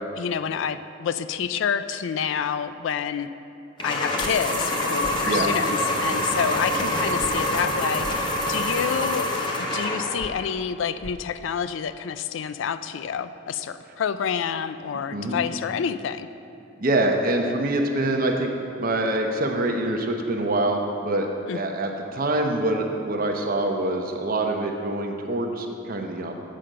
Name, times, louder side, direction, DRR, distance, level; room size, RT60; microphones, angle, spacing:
voice 1, 0.2-3.3 3.8-9.4 9.7-16.3 21.5-21.6, left 7 dB, 65° left, 13 dB, 0.3 m, -28 dB
pencil sharpener, 3.8-10.3, left 1 dB, 25° left, 0.8 m, -26 dB
sound 1, 4.2-4.3 5.0-5.2 7.2-7.3 8.0-8.2 10.2-10.3 11.0-11.1, right 1 dB, 10° right, 0.6 m, -38 dB
voice 2, 16.8-18.5 18.8-21.3 21.5-26.3, right 2 dB, 45° right, 3 dB, 0.7 m, -25 dB
7.6 x 4.9 x 6.6 m, 2.8 s
head